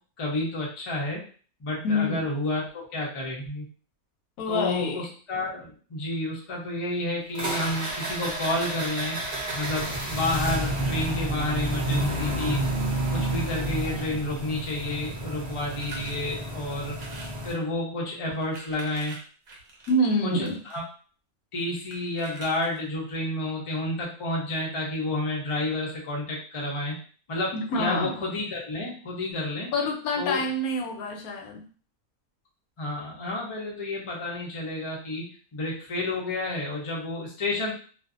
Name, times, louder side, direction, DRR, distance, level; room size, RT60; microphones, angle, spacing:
voice 1, 0.2-1.2 1.6-3.6 4.5-9.2 9.5-12.6 13.1-17.0 17.4-19.1 20.2-20.8 21.5-27.0 27.3-29.7 30.2-30.4 32.8-35.2 35.5-37.7, left 2 dB, 35° left, -3 dB, 0.5 m, -30 dB
voice 2, 1.8-2.2 4.4-5.0 19.9-20.6 27.5-28.2 29.7-31.6, left 1 dB, 80° left, 1 dB, 1.1 m, -26 dB
sound 1, 7.3-17.5, right 1 dB, 50° right, 0.6 m, -30 dB
sound 2, 15.7-16.2 16.9-17.4 18.3-20.8 21.9-22.9, right 3 dB, 75° right, 1.1 m, -44 dB
2.5 x 2.4 x 2.4 m, 0.41 s
omnidirectional pair, 1.6 m